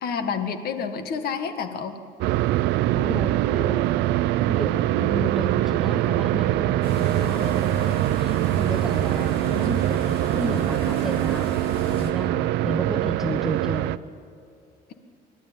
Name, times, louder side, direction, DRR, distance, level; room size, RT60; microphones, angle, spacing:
voice 1, 0.0-2.0, left 6 dB, 65° left, 8 dB, 1.7 m, -29 dB
sound 1, 2.2-14.0, right 14 dB, 90° right, 0.6 m, -23 dB
voice 2, 2.9-3.8 4.5-11.5 12.0-13.9, right 1 dB, ahead, 6 dB, 1.1 m, -32 dB
sound 2, 6.8-12.1, left 2 dB, 35° left, 3.5 m, -37 dB
25.0 x 12.0 x 9.2 m, 2.4 s
cardioid pair, 110°, 17 cm